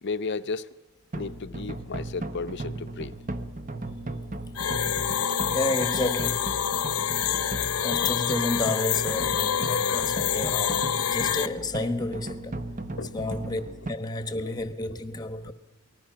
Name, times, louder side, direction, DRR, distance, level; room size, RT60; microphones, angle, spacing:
voice 1, 0.0-0.7 1.1-3.1 7.3-7.4 13.0-13.2 14.3-14.7, left 4 dB, 50° left, 0.7 m, -34 dB
sound 1, 1.1-13.9, right 2 dB, 40° right, 1.1 m, -36 dB
sound 2, 4.6-11.5, left 9 dB, 85° left, 0.8 m, -27 dB
voice 2, 5.5-6.6 7.8-12.6 13.1-13.6 13.9-15.5, left 2 dB, 20° left, 1.2 m, -31 dB
28.5 x 19.5 x 5.9 m
head